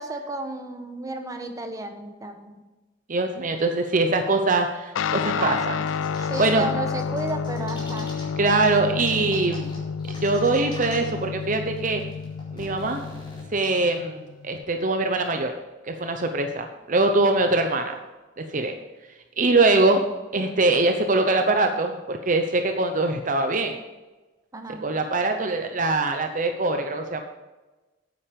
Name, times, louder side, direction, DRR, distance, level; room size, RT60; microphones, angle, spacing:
voice 1, 0.0-2.6 5.4-5.8 6.2-8.1 24.5-24.8, right 1 dB, 20° right, 4 dB, 1.1 m, -33 dB
voice 2, 3.1-5.8 6.2-6.7 8.4-9.7 10.2-12.0 12.5-13.0 13.5-15.5 15.9-18.0 18.4-18.7 19.4-20.0 20.3-23.8 24.8-27.2, right 2 dB, 45° right, 5 dB, 0.8 m, -23 dB
Guitar, 5.0-14.6, left 6 dB, 85° left, 0.4 m, -30 dB
sound 1, 5.8-6.6 6.9-8.2 8.6-8.7 9.0-11.2 11.5-11.6 11.8-13.6, left 1 dB, 25° left, 4.0 m, -43 dB
9.2 x 9.0 x 5.3 m, 1.2 s
head